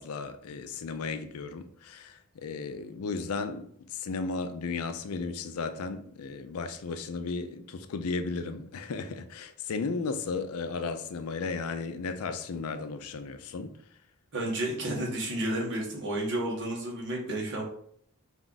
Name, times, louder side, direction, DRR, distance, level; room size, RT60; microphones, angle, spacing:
voice 1, 0.0-3.7 3.9-13.7, left 4 dB, 70° left, 0.4 m, -35 dB
voice 2, 14.3-17.6, right 1 dB, 55° right, 1.2 m, -31 dB
4.2 x 2.4 x 3.8 m
head